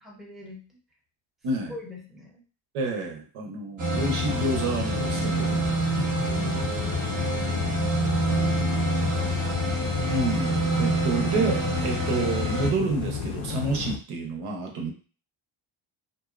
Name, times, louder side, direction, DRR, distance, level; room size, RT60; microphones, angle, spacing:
voice 1, 0.0-0.7 1.7-2.4 6.1-7.7 8.8-9.6, left 2 dB, ahead, -3 dB, 0.6 m, -43 dB
voice 2, 2.7-6.0 10.1-14.9, right 3 dB, 85° right, 3 dB, 0.8 m, -29 dB
sound 1, 3.8-12.7, right 1 dB, 35° right, 0.7 m, -27 dB
sound 2, 3.9-14.0, left 5 dB, 75° left, 0.6 m, -32 dB
2.6 x 2.0 x 2.4 m, 0.38 s
cardioid pair, 115°, 49 cm